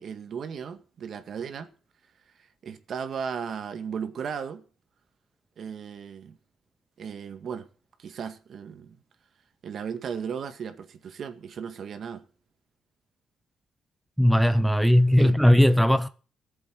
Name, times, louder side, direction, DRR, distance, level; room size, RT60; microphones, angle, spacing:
voice 1, 0.0-1.7 2.6-4.6 5.6-6.4 7.0-7.7 8.0-9.0 9.6-12.2 15.2-15.3, right 7 dB, 60° right, 1.9 m, -36 dB
voice 2, 14.2-16.1, equal, ahead, 0.8 m, -18 dB
15.0 x 7.8 x 9.3 m
cardioid pair, 90°, 0 cm